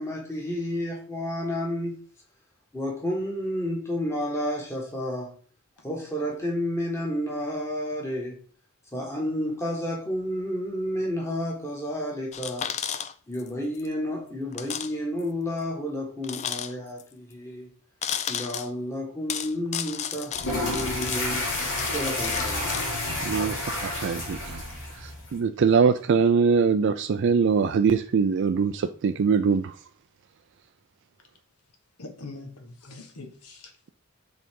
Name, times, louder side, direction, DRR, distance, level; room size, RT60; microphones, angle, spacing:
voice 1, 0.0-1.9 2.7-5.3 5.8-8.4 8.9-12.7 13.3-17.7 18.3-21.5 21.8-22.8 23.2-23.4 23.7-23.8, equal, 10° left, 1.5 m, -31 dB
sound 1, 12.3-13.5 13.7-13.9 14.5-14.9 15.2-15.3 16.2-17.0 18.0-18.7 19.3-22.9, left 9 dB, 30° left, 0.3 m, -33 dB
sound 2, 20.3-25.4, left 1 dB, 60° left, 2.6 m, -30 dB
voice 2, 23.2-24.6 24.9-29.8, right 5 dB, 55° right, 0.3 m, -23 dB
voice 3, 32.0-33.7, left 3 dB, 85° left, 1.4 m, -43 dB
7.5 x 3.9 x 3.7 m
head